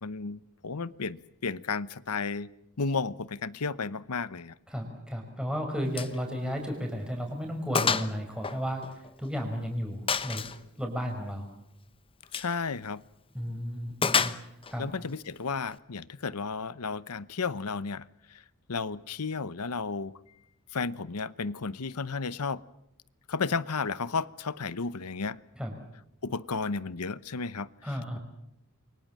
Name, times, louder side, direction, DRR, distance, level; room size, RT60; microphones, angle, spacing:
voice 1, 0.0-2.5 2.8-4.5 12.3-13.0 14.8-18.0 18.3-18.4 18.7-20.1 20.7-22.6 23.3-25.4 26.2-27.7, left 4 dB, 85° left, 17 dB, 0.9 m, -33 dB
voice 2, 4.7-10.4 10.8-11.5 13.3-14.9 25.6-25.7 27.8-28.2, equal, 5° right, 2 dB, 5.1 m, -34 dB
Gunshot gunfire, 5.9-6.2 6.5-6.6 7.1-7.2 7.7-8.1 8.4-9.4 10.1-10.6 12.2-12.5 14.0-14.7, left 5 dB, 25° left, 0.9 m, -28 dB
29.0 x 23.5 x 7.5 m, 0.81 s
head